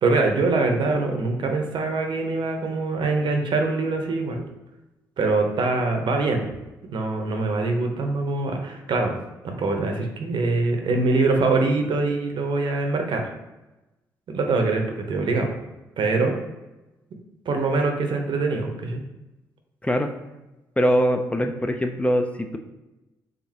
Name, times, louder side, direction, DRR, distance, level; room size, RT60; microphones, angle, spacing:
voice 1, 0.0-4.4 5.2-6.5 6.9-9.1 9.4-13.3 14.3-15.5 16.0-16.4 17.5-19.0, right 3 dB, 60° right, 3 dB, 0.8 m, -23 dB
voice 2, 20.8-22.6, equal, 15° left, 5 dB, 0.4 m, -22 dB
5.0 x 2.6 x 2.8 m, 1.0 s
hypercardioid pair, 45°, 9 cm